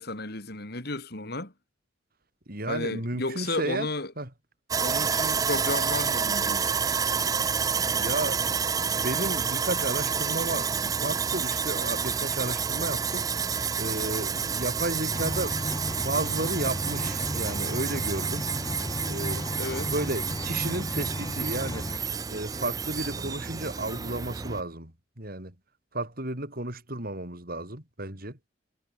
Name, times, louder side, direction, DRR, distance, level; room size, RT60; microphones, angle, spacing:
voice 1, 0.0-1.5 2.7-4.1 4.8-6.7 14.3-14.6 19.6-19.9, left 2 dB, 55° left, 4.6 m, -33 dB
voice 2, 2.5-3.9 4.2-4.3 7.9-13.4 13.8-15.6 16.0-18.5 19.1-19.5 19.8-21.9 22.3-25.5 25.9-28.4, right 2 dB, 50° right, 5.5 m, -33 dB
Sawing, 4.7-24.6, right 6 dB, 20° right, 0.4 m, -29 dB
sound 1, 15.1-22.0, left 1 dB, 20° left, 2.4 m, -34 dB
head